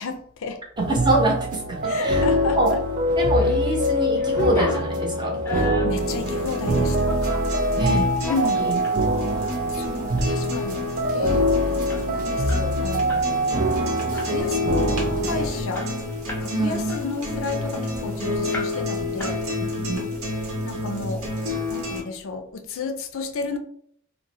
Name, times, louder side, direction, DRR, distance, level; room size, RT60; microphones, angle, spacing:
voice 1, 0.0-0.6 1.8-2.8 5.5-7.2 8.3-8.7 9.7-13.4 14.1-15.9 16.4-19.4 20.4-23.6, left 3 dB, 65° left, 0.4 m, -32 dB
voice 2, 0.8-2.2 2.6-2.8 3.1-5.4 7.8-8.1 8.6-9.5 16.5-16.9 19.9-20.1, right 2 dB, 20° right, 0.8 m, -25 dB
sound 1, 0.8-15.5, equal, 40° right, 0.4 m, -24 dB
sound 2, 3.1-3.6 3.9-7.5 8.0-9.0 9.4-9.6 10.0-10.3 10.6-10.7 11.0-13.3 13.6-13.8 14.2-14.6 15.1-15.2 15.4-16.5 16.9-18.1 18.5-18.9 19.2-19.8, equal, 10° left, 0.6 m, -34 dB
sound 3, 6.0-22.0, left 2 dB, 65° right, 1.0 m, -30 dB
2.6 x 2.0 x 3.9 m
head